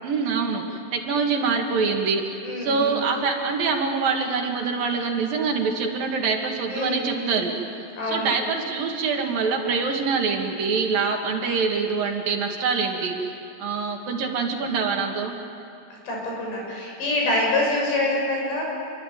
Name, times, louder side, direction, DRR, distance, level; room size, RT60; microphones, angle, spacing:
voice 1, 0.0-7.5 8.0-13.3 13.6-15.3, right 5 dB, 60° right, 2 dB, 3.5 m, -25 dB
voice 2, 2.4-3.0 6.7-7.5 8.0-8.3 16.1-18.6, left 1 dB, 80° left, -2 dB, 9.0 m, -26 dB
27.5 x 23.0 x 9.1 m, 2.7 s
omnidirectional pair, 4.9 m